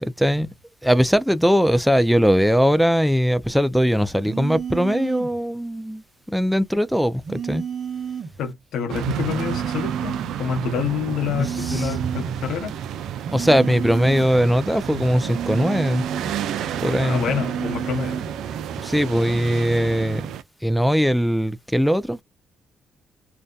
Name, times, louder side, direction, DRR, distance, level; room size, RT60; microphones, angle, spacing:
voice 1, 0.0-0.5 0.8-6.0 6.3-7.6 11.4-12.0 13.3-16.0 16.8-17.3 18.8-20.3 20.6-22.2, equal, ahead, 0.4 m, -20 dB
sound 1, 4.2-5.4 7.2-8.4 9.2-10.4 11.2-12.4 13.2-14.4 15.2-16.4 17.2-18.4 19.2-19.5, right 7 dB, 50° right, 0.8 m, -31 dB
voice 2, 8.4-12.7 17.0-18.3, left 7 dB, 75° left, 0.8 m, -27 dB
sound 2, 8.9-20.4, right 9 dB, 80° right, 0.4 m, -30 dB
2.7 x 2.1 x 2.3 m
cardioid pair, 90°, 0 cm